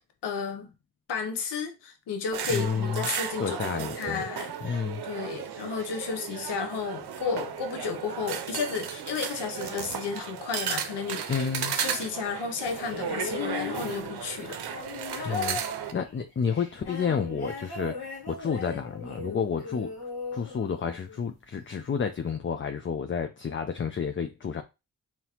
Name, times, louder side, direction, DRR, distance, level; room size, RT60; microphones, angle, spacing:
voice 1, 0.2-0.7 1.1-11.5 11.7-14.6 15.2-15.4, left 5 dB, 85° left, 0.8 m, -33 dB
sound 1, 2.3-15.9, right 8 dB, 70° right, 0.7 m, -35 dB
voice 2, 2.5-3.1 3.4-4.2 4.6-5.0 11.3-11.7 15.2-19.9 20.3-24.6, left 6 dB, 30° left, 0.5 m, -30 dB
sound 2, 12.9-21.3 22.3-22.4, left 4 dB, 65° left, 1.6 m, -38 dB
3.9 x 2.9 x 2.9 m
cardioid pair, 45°, 40 cm